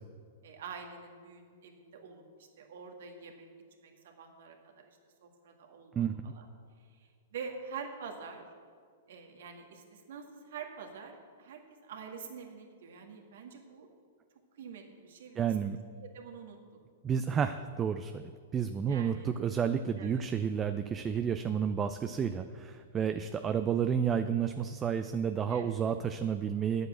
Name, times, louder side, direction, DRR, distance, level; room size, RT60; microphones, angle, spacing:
voice 1, 0.4-3.5 3.8-6.5 6.9-8.4 9.1-13.9 14.6-15.6 16.0-16.6 18.9-19.3 20.0-20.3 25.5-25.7, right 5 dB, 65° right, 2 dB, 2.0 m, -46 dB
voice 2, 15.4-15.8 17.0-26.9, right 7 dB, 20° right, 9 dB, 0.5 m, -31 dB
9.8 x 8.1 x 7.5 m, 2.1 s
hypercardioid pair, 115°, 0 cm